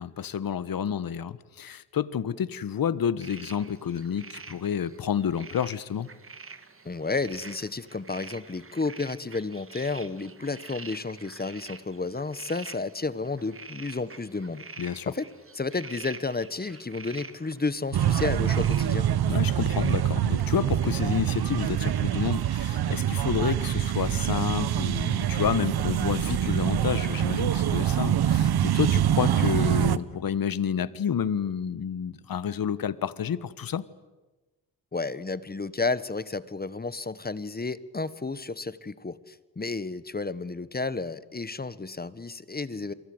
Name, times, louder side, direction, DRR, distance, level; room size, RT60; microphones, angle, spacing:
voice 1, 0.0-6.1 14.8-15.1 19.3-33.8, left 8 dB, 60° left, 17 dB, 1.3 m, -29 dB
sound 1, 3.2-22.9, right 4 dB, 30° right, 2.1 m, -47 dB
voice 2, 6.8-14.6 15.0-15.3 15.5-19.1 34.9-42.9, left 3 dB, 25° left, 16 dB, 1.4 m, -32 dB
sound 2, 17.9-30.0, right 10 dB, 65° right, 1.1 m, -25 dB
30.0 x 23.5 x 8.0 m, 1.2 s
cardioid pair, 60°, 40 cm